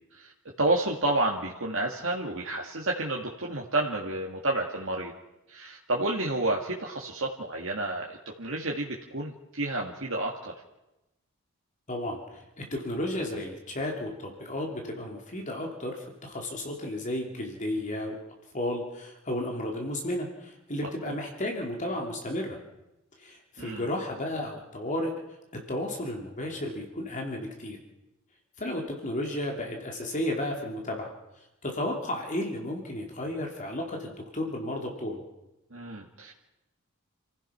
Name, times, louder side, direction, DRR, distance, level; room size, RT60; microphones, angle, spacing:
voice 1, 0.6-5.1 5.5-10.5 21.1-21.2 23.6-23.8 35.7-36.3, right 2 dB, 65° right, -2 dB, 2.0 m, -30 dB
voice 2, 11.9-18.2 18.5-22.6 23.2-25.1 25.7-27.8 28.6-31.1 31.6-35.2, left 1 dB, 35° left, 1 dB, 3.1 m, -33 dB
28.5 x 15.5 x 5.9 m, 0.96 s
head